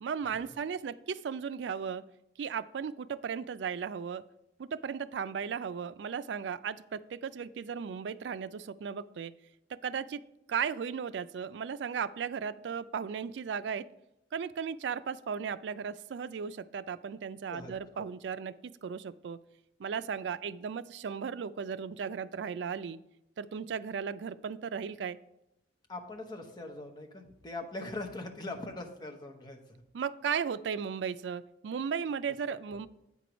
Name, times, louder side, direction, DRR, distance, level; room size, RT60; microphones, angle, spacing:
voice 1, 0.0-2.0 2.4-4.2 4.6-9.3 9.7-10.2 10.5-13.9 14.3-19.4 19.8-23.0 23.4-25.2 29.9-32.9, right 6 dB, 75° right, 14 dB, 0.3 m, -36 dB
voice 2, 17.5-18.1 25.9-29.6, left 2 dB, 25° left, 2 dB, 0.9 m, -41 dB
8.4 x 4.6 x 5.1 m, 0.86 s
head